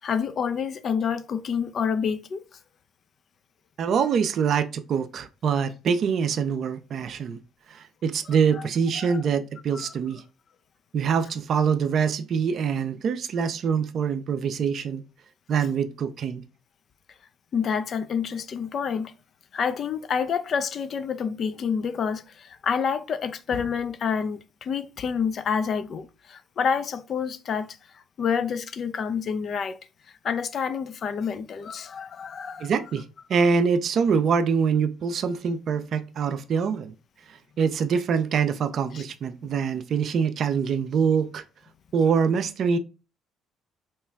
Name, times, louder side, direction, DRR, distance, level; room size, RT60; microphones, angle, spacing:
voice 1, 0.0-2.4 8.6-8.7 9.0-9.2 9.7-9.9 17.5-19.1 19.5-27.8 28.2-29.8 30.2-32.7 38.9-39.0, left 6 dB, 50° left, 0.3 m, -28 dB
voice 2, 3.8-7.4 7.7-10.2 10.9-15.0 15.5-16.4 32.6-33.0 33.3-36.9 37.3-41.4 41.9-42.8, right 6 dB, 55° right, 0.4 m, -24 dB
2.9 x 2.3 x 3.4 m
hypercardioid pair, 55°, 0 cm